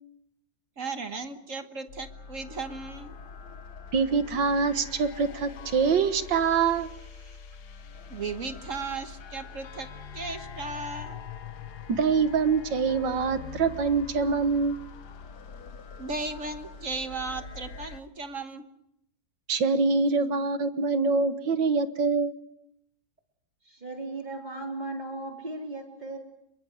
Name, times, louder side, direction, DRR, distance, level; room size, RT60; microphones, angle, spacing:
voice 1, 0.8-3.1 8.1-9.9 10.1-11.2 16.0-18.6, right 3 dB, 45° right, 8 dB, 1.5 m, -36 dB
sound 1, 1.9-18.0, left 6 dB, 60° left, 1.7 m, -44 dB
voice 2, 3.9-6.9 11.9-14.8 19.5-22.3, right 5 dB, 75° right, 10 dB, 2.0 m, -25 dB
voice 3, 23.7-26.2, right 2 dB, 20° right, 2 dB, 4.0 m, -36 dB
26.5 x 22.5 x 6.4 m, 0.79 s
omnidirectional pair, 2.0 m